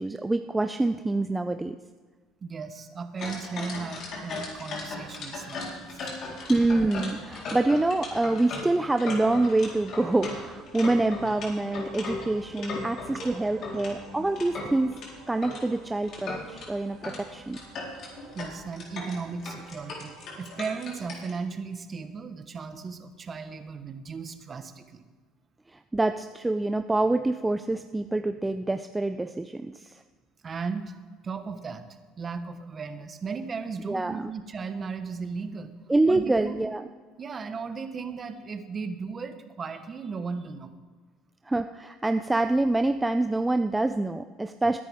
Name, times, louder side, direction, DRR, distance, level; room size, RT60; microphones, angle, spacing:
voice 1, 0.0-1.8 6.5-15.0 15.3-17.6 25.7-30.0 33.9-34.3 35.9-36.8 41.5-44.8, right 2 dB, 10° right, 8 dB, 0.5 m, -26 dB
voice 2, 2.4-5.9 12.6-12.7 13.1-13.3 18.3-25.1 30.4-31.9 32.2-35.7 36.1-36.6 37.2-40.7, right 5 dB, 35° right, 9 dB, 1.2 m, -36 dB
sound 1, 3.2-13.3 13.6-15.6 16.0-16.7 17.0-17.2 17.5-21.3, left 3 dB, 55° left, 3.9 m, -37 dB
sound 2, 7.0-8.6 9.1-10.7 11.2-12.7 13.3-14.8, left 4 dB, 80° left, 2.0 m, -53 dB
sound 3, 8.9-21.2, right 5 dB, 65° right, 2.7 m, -52 dB
21.0 x 10.5 x 3.6 m, 1.4 s
supercardioid pair, 95°, 0 cm